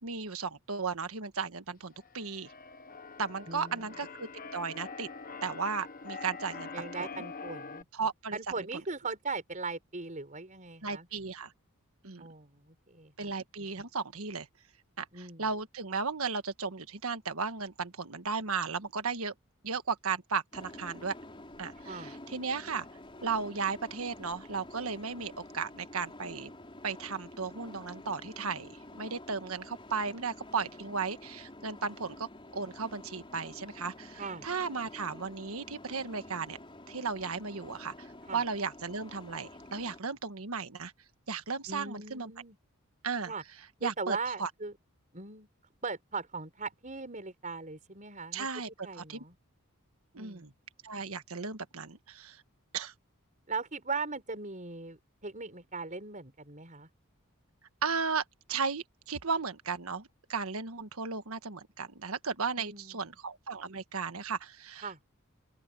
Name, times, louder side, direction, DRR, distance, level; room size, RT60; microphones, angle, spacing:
voice 1, 0.0-2.5 3.2-5.1 5.4-7.2 7.9-8.4 10.8-11.5 12.0-12.3 13.2-14.5 15.0-19.3 19.6-21.1 21.6-22.8 23.2-26.5 26.8-32.3 32.5-36.6 36.9-40.9 41.3-42.3 43.0-43.3 43.8-44.5 48.3-48.7 48.9-49.2 50.1-50.5 50.8-52.4 52.7-52.9 57.8-58.2 58.5-65.0, right 5 dB, 80° right, 1.5 m, -35 dB
Keyboard (musical), 1.9-7.8, left 4 dB, 40° left, 1.2 m, -44 dB
voice 2, 3.5-4.0 6.7-7.9 8.3-11.1 12.2-13.3 15.1-15.5 21.8-22.1 34.2-34.5 38.3-38.4 41.7-42.6 43.2-43.4 43.8-44.8 45.1-45.5 45.8-48.5 48.8-49.3 50.1-50.5 53.5-56.9 62.6-63.1 64.8-65.0, right 4 dB, 35° right, 5.1 m, -39 dB
sound 1, 20.5-40.0, left 1 dB, 25° left, 5.0 m, -49 dB
open air
head